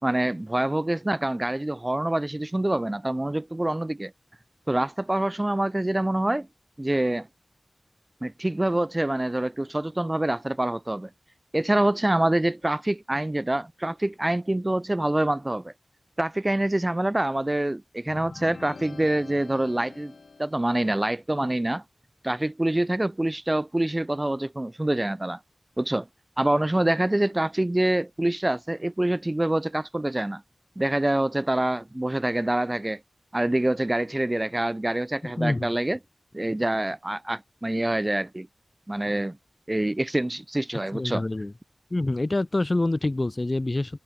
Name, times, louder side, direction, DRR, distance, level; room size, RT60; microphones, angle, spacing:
voice 1, 0.0-4.1 4.7-6.5 6.8-7.3 8.2-11.1 11.5-15.7 16.2-20.1 20.4-21.8 22.2-25.4 25.8-26.1 26.4-30.4 30.8-33.0 33.3-36.0 36.3-38.5 38.9-39.4 39.7-41.2, right 1 dB, 25° right, 2.3 m, -26 dB
sound 1, 18.1-20.9, left 4 dB, 85° left, 4.1 m, -45 dB
voice 2, 35.4-35.7 40.9-41.5 41.9-44.0, left 2 dB, 40° left, 0.7 m, -26 dB
wide cardioid pair, 55°, 0 cm